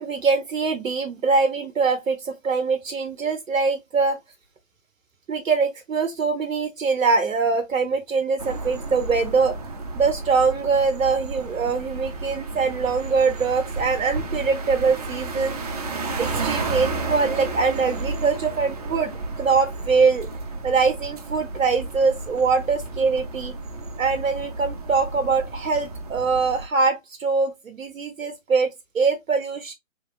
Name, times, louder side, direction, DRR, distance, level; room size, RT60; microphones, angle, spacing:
voice 1, 0.0-4.2 5.3-9.5 9.9-15.6 16.2-20.3 20.6-23.5 24.0-28.7 28.9-29.7, right 4 dB, 85° right, 0.6 m, -23 dB
sound 1, 8.4-26.6, right 3 dB, 30° right, 0.4 m, -32 dB
2.9 x 2.9 x 2.2 m
figure-of-eight pair, 130°, 39 cm